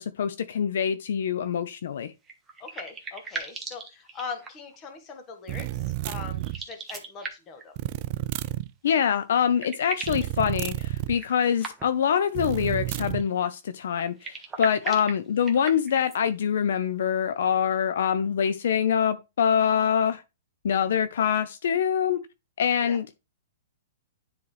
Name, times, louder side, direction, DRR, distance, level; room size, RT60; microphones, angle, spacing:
voice 1, 0.0-2.1 8.8-20.2 20.6-22.2 22.6-23.1, left 8 dB, 70° left, 0.5 m, -25 dB
sound 1, 2.2-4.8 6.4-7.7 9.0-9.1 9.3-10.3 11.1-12.1 14.0-16.2, right 4 dB, 10° right, 1.1 m, -38 dB
voice 2, 2.6-7.7 14.8-15.0 22.8-23.0, left 5 dB, 25° left, 1.4 m, -41 dB
sound 2, 5.5-6.6 7.8-8.7 10.0-11.2 12.3-13.2, right 17 dB, 35° right, 0.3 m, -30 dB
9.6 x 3.9 x 3.3 m
hypercardioid pair, 155°, 0 cm